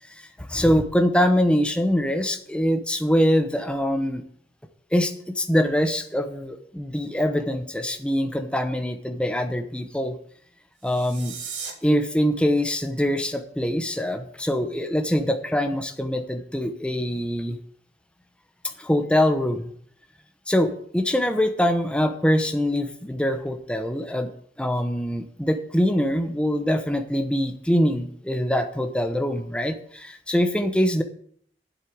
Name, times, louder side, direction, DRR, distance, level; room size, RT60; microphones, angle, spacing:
voice 1, 0.0-4.2 4.9-10.2 10.8-11.3 11.8-17.6 18.8-19.7 20.5-24.3 24.6-31.0, equal, 5° left, 7 dB, 0.8 m, -23 dB
sound 1, 10.7-11.7, right 6 dB, 80° right, 2.2 m, -36 dB
8.1 x 8.0 x 8.6 m, 0.63 s
head